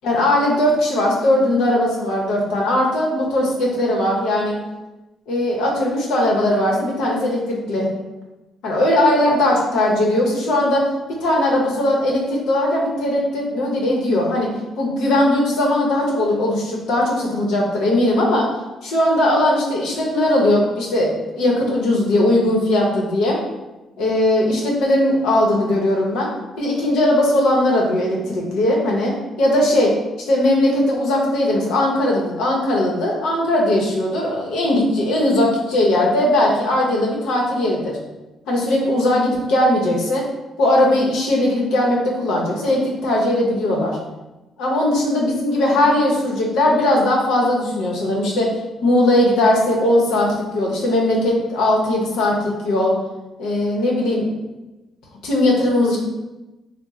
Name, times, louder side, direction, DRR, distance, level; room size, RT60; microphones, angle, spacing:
voice 1, 0.0-4.6 5.3-7.9 8.6-10.8 11.2-14.5 14.8-18.5 18.8-23.4 24.0-26.3 26.6-29.9 30.3-38.0 38.5-40.2 40.6-44.0 44.6-48.5 48.8-52.9 53.4-54.4 55.2-56.0, left 1 dB, 85° left, -2 dB, 0.7 m, -19 dB
3.0 x 2.0 x 3.5 m, 1.1 s
cardioid pair, 90°, 0 cm